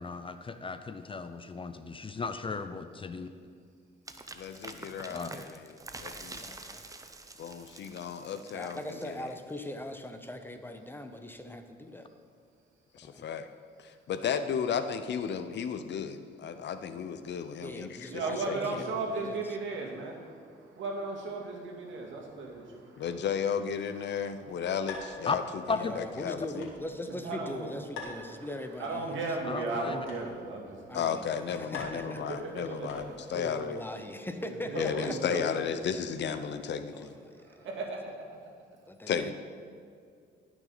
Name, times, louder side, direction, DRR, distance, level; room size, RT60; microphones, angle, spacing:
voice 1, 0.0-3.3 5.1-5.3 25.3-25.4 25.7-26.0 29.5-30.1, left 4 dB, 25° left, 10 dB, 0.5 m, -35 dB
sound 1, 4.1-9.6, right 3 dB, 15° right, 0.7 m, -46 dB
voice 2, 4.3-6.6 7.4-8.8 9.0-9.1 13.0-13.5 13.8-18.8 23.0-26.6 30.9-33.8 34.8-37.1 39.1-39.3, left 7 dB, 60° left, 10 dB, 0.7 m, -34 dB
voice 3, 6.0-6.9 8.5-12.1 13.1-13.3 17.6-19.6 25.7-29.8 30.9-32.8 33.3-35.2 36.9-37.7 38.9-39.3, left 1 dB, 10° left, 7 dB, 0.9 m, -41 dB
voice 4, 18.1-20.2 20.8-23.0 27.2-27.6 28.8-31.0 32.5-33.3 34.7-35.4 37.6-38.2, right 3 dB, 75° right, 0 dB, 2.2 m, -35 dB
sound 2, 24.8-33.4, left 3 dB, 80° left, 2.2 m, -48 dB
17.5 x 6.2 x 4.0 m, 2.3 s
cardioid pair, 90°, 20 cm